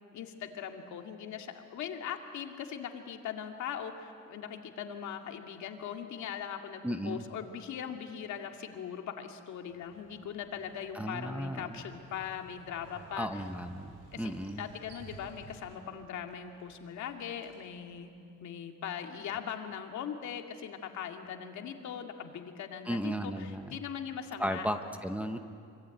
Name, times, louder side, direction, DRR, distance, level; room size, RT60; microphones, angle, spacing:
voice 1, 0.1-13.4 14.1-24.7, left 8 dB, 70° left, 4 dB, 2.3 m, -40 dB
voice 2, 6.8-7.2 10.9-11.8 13.2-14.7 22.9-23.8 24.4-25.4, equal, 5° right, 5 dB, 1.0 m, -35 dB
Motorcycle, 9.7-18.0, right 3 dB, 60° right, 6.4 m, -55 dB
26.0 x 25.0 x 9.2 m, 2.5 s
cardioid pair, 155°, 30 cm